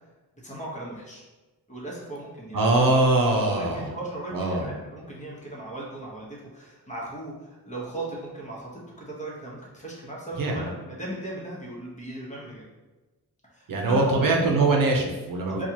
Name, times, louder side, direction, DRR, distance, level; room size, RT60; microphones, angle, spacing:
voice 1, 0.4-1.2 1.7-2.7 3.5-8.7 9.0-12.7 13.5-14.2 15.5-15.7, right 1 dB, 20° left, -4 dB, 1.1 m, -37 dB
voice 2, 2.5-3.9 4.3-4.7 10.4-10.7 13.7-15.7, right 2 dB, 65° right, 0 dB, 0.7 m, -22 dB
4.3 x 2.4 x 2.9 m, 1.1 s
cardioid pair, 90°, 36 cm